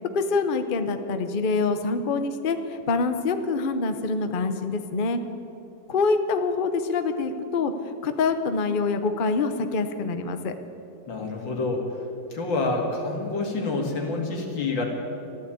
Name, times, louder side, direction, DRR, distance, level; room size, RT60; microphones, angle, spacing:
voice 1, 0.1-5.2 5.9-7.7 8.0-10.5, left 4 dB, 45° left, 8 dB, 0.7 m, -25 dB
voice 2, 11.1-11.8 12.3-14.9, left 3 dB, 85° left, 1 dB, 2.8 m, -27 dB
14.5 x 11.5 x 8.4 m, 2.8 s
omnidirectional pair, 2.0 m